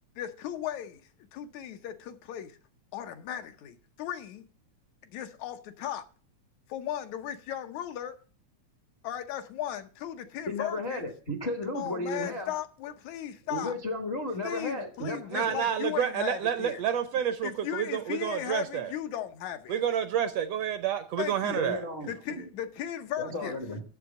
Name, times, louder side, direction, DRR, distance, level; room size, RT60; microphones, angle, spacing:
voice 1, 0.2-2.6 2.9-4.5 5.0-6.1 6.7-8.2 9.0-11.1 11.7-13.8 14.4-16.8 17.4-19.7 21.2-21.6 22.1-23.6, left 11 dB, 75° left, 2.1 m, -36 dB
voice 2, 10.5-12.5 13.5-15.6 21.5-22.5 23.2-23.8, left 1 dB, 45° left, 0.8 m, -34 dB
voice 3, 15.3-18.9 19.7-21.8, right 9 dB, 75° right, 1.6 m, -29 dB
8.3 x 7.1 x 7.0 m
omnidirectional pair, 3.4 m